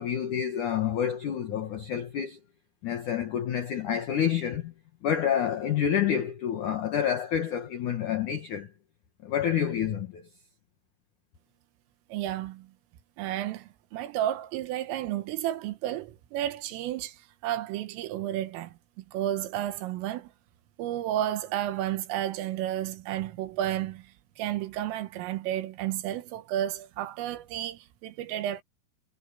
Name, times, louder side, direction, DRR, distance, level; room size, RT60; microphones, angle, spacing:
voice 1, 0.0-2.4 2.8-4.7 5.0-8.7 9.2-10.3, left 9 dB, 90° left, 1.7 m, -28 dB
voice 2, 12.1-12.7 13.2-20.3 20.8-28.6, right 12 dB, 80° right, 3.8 m, -32 dB
omnidirectional pair, 6.0 m